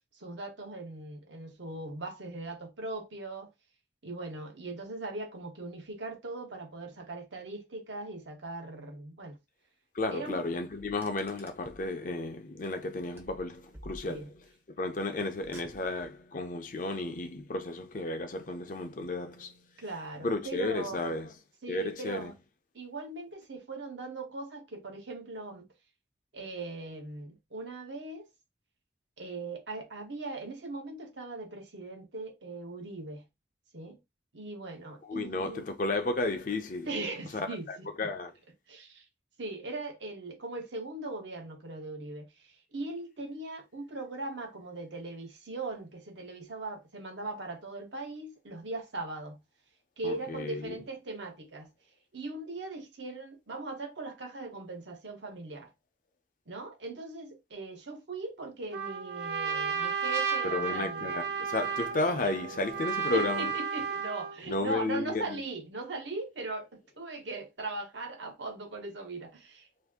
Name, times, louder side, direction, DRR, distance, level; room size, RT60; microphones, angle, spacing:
voice 1, 0.2-3.5 4.0-9.4 10.1-10.4 14.1-14.3 19.8-21.1 21.6-22.3 22.7-25.7 26.3-28.3 29.2-33.3 33.7-34.0 34.3-35.7 36.8-38.1 38.7-39.0 39.4-42.3 42.7-49.4 50.0-51.7 52.1-55.7 56.5-61.2 63.1-69.7, right 2 dB, 80° right, 1.0 m, -39 dB
voice 2, 9.9-14.4 14.8-19.6 20.2-21.3 21.7-22.3 35.0-36.9 37.3-38.3 50.0-50.8 60.4-63.5 64.5-65.4, left 2 dB, 45° left, 0.6 m, -33 dB
Car, 10.7-11.9 13.2-14.5 15.3-16.2, right 1 dB, 10° right, 0.6 m, -51 dB
Trumpet, 58.7-64.4, right 6 dB, 60° right, 0.5 m, -33 dB
2.7 x 2.6 x 3.5 m
head